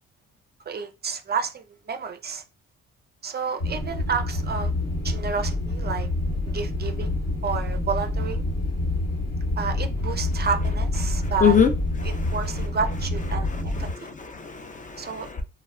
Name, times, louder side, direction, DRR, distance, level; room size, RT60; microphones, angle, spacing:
voice 1, 0.7-2.4 3.2-4.7 5.0-6.1 6.5-7.1 7.4-8.4 9.6-11.7 12.0-14.1 15.0-15.3, right 5 dB, 35° right, 0.4 m, -30 dB
sound 1, 3.6-13.9, left 2 dB, 60° left, 1.3 m, -27 dB
voice 2, 11.4-11.7 12.0-12.3 13.9-15.4, left 7 dB, 25° left, 0.4 m, -23 dB
2.2 x 2.1 x 3.4 m
cardioid pair, 90°, 30 cm